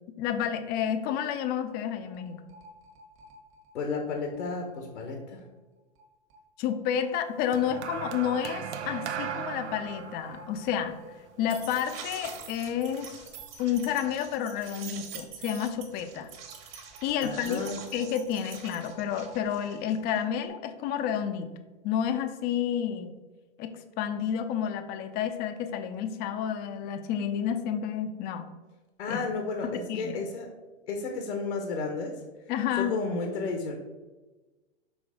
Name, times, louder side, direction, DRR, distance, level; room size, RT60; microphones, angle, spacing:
voice 1, 0.2-2.4 6.6-11.0 11.4-13.1 13.6-16.3 17.0-17.6 17.9-21.5 21.8-23.2 23.6-28.5 29.1-29.2 29.7-30.2 32.5-33.0, left 9 dB, 30° left, 8 dB, 0.6 m, -30 dB
sound 1, 1.3-1.5 1.7-1.8 2.0-5.2 6.0-6.1 6.3-6.4 6.7-6.8 8.7-8.8 9.1-9.2 9.5-20.5, right 6 dB, 40° right, 1.4 m, -46 dB
voice 2, 3.7-5.5 17.2-17.8 29.0-30.5 30.9-32.1 32.7-33.7, left 3 dB, 75° left, 2 dB, 1.2 m, -32 dB
sound 2, 7.5-12.0 12.9-13.1, right 7 dB, 80° right, 0.7 m, -37 dB
6.2 x 3.3 x 4.9 m, 1.2 s
hypercardioid pair, 125°, 34 cm